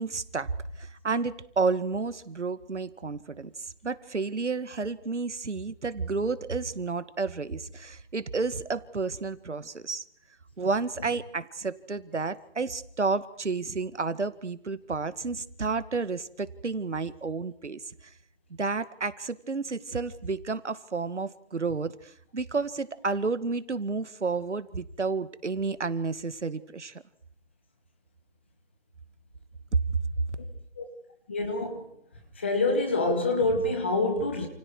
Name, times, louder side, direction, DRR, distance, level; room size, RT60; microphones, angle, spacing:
voice 1, 0.0-10.0 10.6-18.1 18.6-27.0 29.7-30.2, right 4 dB, 75° right, 2.1 m, -31 dB
voice 2, 31.3-31.9 32.4-34.5, left 2 dB, 10° left, 1.1 m, -26 dB
29.5 x 29.0 x 4.8 m
figure-of-eight pair, 170°, 35 cm